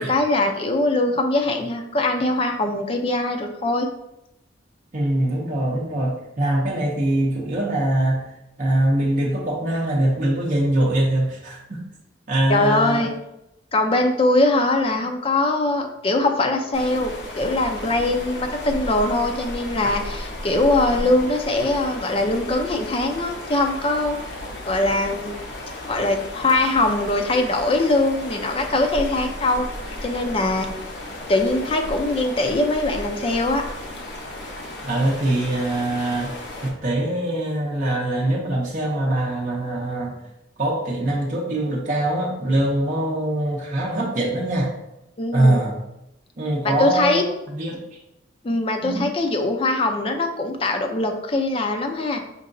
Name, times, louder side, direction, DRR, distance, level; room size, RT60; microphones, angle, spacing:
voice 1, 0.0-3.9 12.5-13.1 13.7-24.2 24.7-25.4 25.9-29.6 30.0-30.7 31.3-33.6 45.2-45.6 46.6-47.2 48.4-52.2, left 2 dB, 30° left, 4 dB, 0.4 m, -22 dB
voice 2, 4.9-8.3 8.6-11.8 12.3-13.0 19.8-19.9 34.8-36.3 36.6-40.2 40.6-44.7 45.3-45.8 46.4-47.8 48.8-49.1, right 1 dB, 45° right, -3 dB, 0.7 m, -23 dB
sound 1, 16.7-36.7, left 1 dB, 70° left, 0.8 m, -34 dB
5.2 x 2.8 x 2.6 m, 0.86 s
head